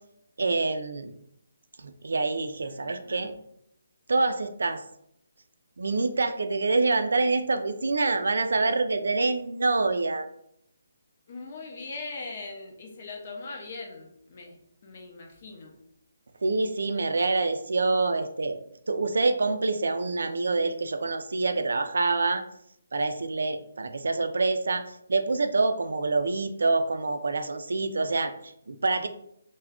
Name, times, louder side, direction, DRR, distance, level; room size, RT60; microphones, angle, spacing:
voice 1, 0.4-1.1 1.8-3.3 4.1-4.8 5.8-10.3 16.4-18.6 18.9-22.4 22.9-29.1, right 3 dB, 75° right, 9 dB, 0.3 m, -26 dB
voice 2, 2.6-3.4 11.3-15.8, left 3 dB, 40° left, 1 dB, 0.6 m, -41 dB
2.3 x 2.1 x 3.5 m, 0.73 s
hypercardioid pair, 165°, 0 cm